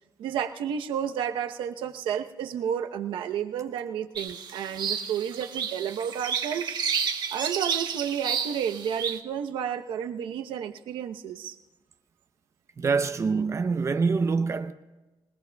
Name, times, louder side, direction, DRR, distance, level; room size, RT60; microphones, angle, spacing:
voice 1, 0.2-6.8 7.3-11.6, right 8 dB, 85° right, 0.9 m, -31 dB
sound 1, 4.2-9.2, right 7 dB, 60° right, 1.3 m, -31 dB
voice 2, 12.8-14.7, right 4 dB, 35° right, 0.7 m, -25 dB
26.5 x 18.5 x 2.3 m
cardioid pair, 90°, 8 cm